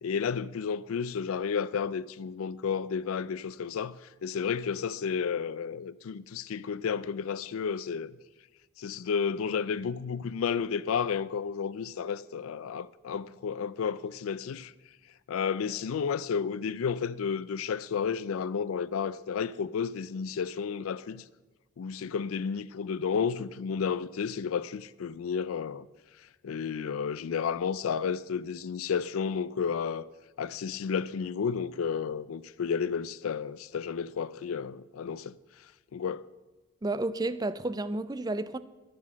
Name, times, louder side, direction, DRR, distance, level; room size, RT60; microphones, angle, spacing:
voice 1, 0.0-8.2 8.8-14.7 15.3-21.2 21.8-25.9 26.2-30.0 30.4-35.7 35.9-36.3, left 6 dB, 80° left, 0.4 m, -32 dB
voice 2, 36.8-38.6, right 2 dB, 20° right, 0.4 m, -31 dB
12.0 x 7.3 x 7.4 m
head